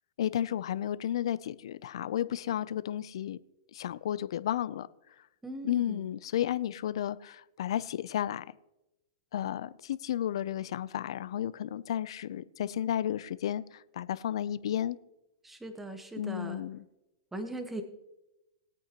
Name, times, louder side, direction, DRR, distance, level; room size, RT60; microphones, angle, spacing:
voice 1, 0.2-3.4 3.7-4.9 5.6-8.4 9.3-15.0 16.2-16.8, left 11 dB, 70° left, 0.5 m, -32 dB
voice 2, 5.4-6.0 15.4-16.6 17.3-17.8, right 1 dB, 5° right, 1.2 m, -39 dB
21.0 x 8.7 x 3.0 m
hypercardioid pair, 135°, 3 cm